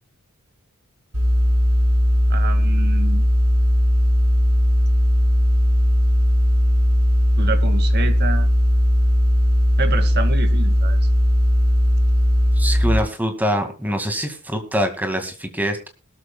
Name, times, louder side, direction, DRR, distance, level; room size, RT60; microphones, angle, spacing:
sound 1, 1.1-13.0, equal, 75° right, 6.7 m, -17 dB
voice 1, 2.3-3.3 7.4-8.5 9.8-11.0, right 3 dB, 45° right, 8 dB, 2.1 m, -28 dB
voice 2, 12.6-15.9, equal, 10° right, 6 dB, 2.1 m, -24 dB
21.0 x 13.0 x 2.3 m, 0.32 s
head